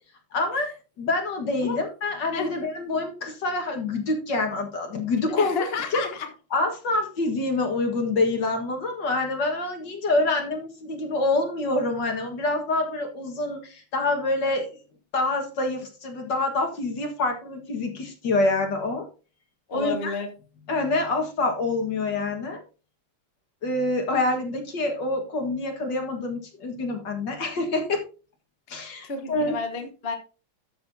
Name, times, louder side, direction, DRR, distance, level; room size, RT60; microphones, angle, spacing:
voice 1, 0.3-0.7 1.0-5.6 5.9-6.0 6.5-14.7 15.1-19.1 19.7-20.1 20.7-22.6 23.6-28.0 28.7-29.6, left 2 dB, 60° left, 3 dB, 2.3 m, -26 dB
voice 2, 5.4-6.3 19.7-20.3 28.7-30.2, left 4 dB, 35° left, 4 dB, 1.3 m, -31 dB
13.0 x 6.7 x 2.8 m, 0.34 s
omnidirectional pair, 2.2 m